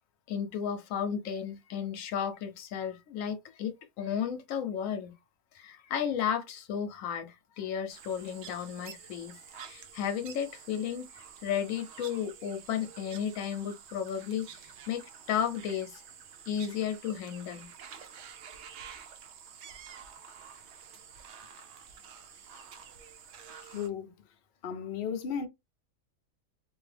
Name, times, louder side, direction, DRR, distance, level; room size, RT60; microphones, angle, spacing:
voice 1, 0.3-5.1 5.5-15.0 15.3-16.0 16.5-17.7, left 8 dB, 80° left, 1.0 m, -34 dB
sound 1, 7.9-23.9, right 7 dB, 65° right, 0.7 m, -49 dB
voice 2, 23.7-24.1 24.6-25.5, left 7 dB, 55° left, 0.7 m, -34 dB
2.8 x 2.4 x 3.2 m
omnidirectional pair, 1.4 m